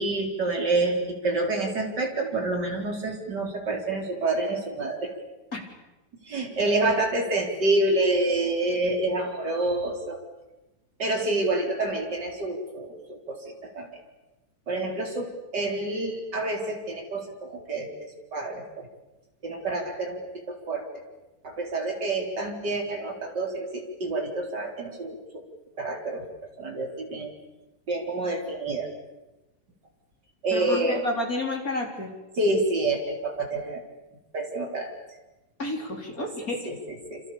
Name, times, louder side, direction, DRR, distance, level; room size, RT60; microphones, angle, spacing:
voice 1, 0.0-5.1 6.2-10.2 11.0-13.9 14.7-18.9 19.4-20.9 21.4-25.4 25.8-26.2 26.6-27.3 27.9-28.9 30.4-31.1 32.4-33.8 34.3-34.9 36.2-36.3 36.6-37.2, right 2 dB, 30° right, 1 dB, 4.6 m, -28 dB
voice 2, 30.5-32.1 35.6-36.6, left 2 dB, 25° left, 2 dB, 3.9 m, -30 dB
28.0 x 26.5 x 7.1 m, 1.0 s
omnidirectional pair, 3.9 m